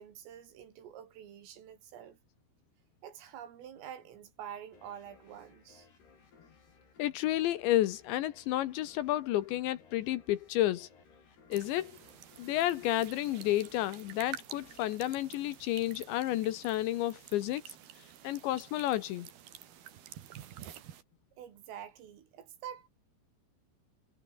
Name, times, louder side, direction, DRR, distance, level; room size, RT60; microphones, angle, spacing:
voice 1, 0.0-2.2 3.0-5.9 21.4-22.9, right 9 dB, 80° right, 5.8 m, -47 dB
sound 1, 4.7-16.0, left 5 dB, 50° left, 8.3 m, -61 dB
voice 2, 7.0-10.9 11.5-11.9 12.4-17.7 18.2-19.3, left 14 dB, 75° left, 3.1 m, -31 dB
sound 2, 11.5-21.0, right 10 dB, 60° right, 3.5 m, -50 dB
omnidirectional pair, 5.8 m